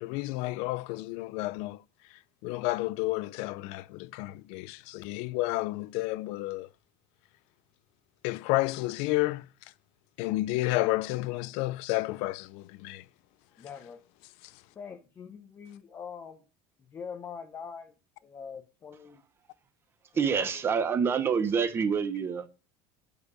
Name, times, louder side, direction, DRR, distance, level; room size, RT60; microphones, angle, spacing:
voice 1, 0.0-1.8 2.4-6.7 8.2-9.5 10.2-13.0, left 19 dB, 60° left, 0.4 m, -31 dB
voice 2, 13.6-14.0 14.7-16.4 16.8-17.9 18.2-19.2 20.1-20.6, left 6 dB, 20° left, 0.7 m, -44 dB
voice 3, 20.1-22.5, right 6 dB, 20° right, 0.7 m, -27 dB
6.5 x 4.9 x 4.9 m
cardioid pair, 170°, 11 cm